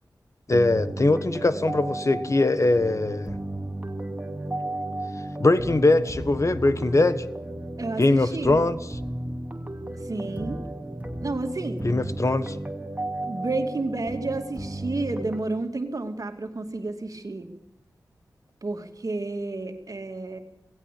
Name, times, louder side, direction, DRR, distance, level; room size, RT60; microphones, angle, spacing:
voice 1, 0.5-3.3 5.4-7.2 8.0-8.8 11.8-12.5, left 2 dB, 40° left, 13 dB, 1.4 m, -21 dB
sound 1, 0.5-15.4, right 1 dB, 20° right, 2.8 m, -34 dB
voice 2, 7.8-8.6 9.9-10.6 11.2-11.8 13.2-17.5 18.6-20.4, right 2 dB, 50° right, 6 dB, 2.6 m, -31 dB
18.5 x 16.5 x 8.6 m, 0.79 s
cardioid pair, 50°, 7 cm